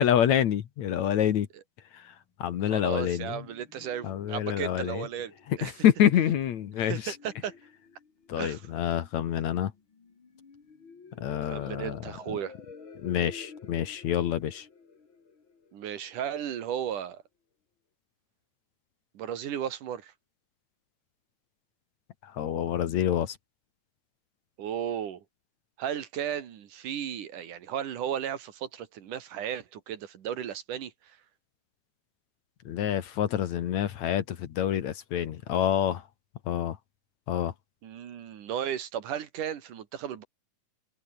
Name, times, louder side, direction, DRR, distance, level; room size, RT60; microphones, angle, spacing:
voice 1, 0.0-1.5 1.9-2.1 2.4-3.4 4.0-5.1 5.5-7.2 8.3-9.7 11.2-12.0 13.0-14.7 22.2-23.4 32.7-36.0 36.5-36.8 37.3-37.5, left 10 dB, 60° left, 2.5 m, -27 dB
voice 2, 2.7-5.3 5.6-5.7 6.9-7.5 8.4-8.6 11.5-12.5 15.7-17.2 19.1-20.1 24.6-25.2 25.8-30.9 37.8-40.2, right 9 dB, 70° right, 3.4 m, -35 dB
sound 1, 2.8-16.4, left 5 dB, 35° left, 3.6 m, -52 dB
omnidirectional pair, 3.8 m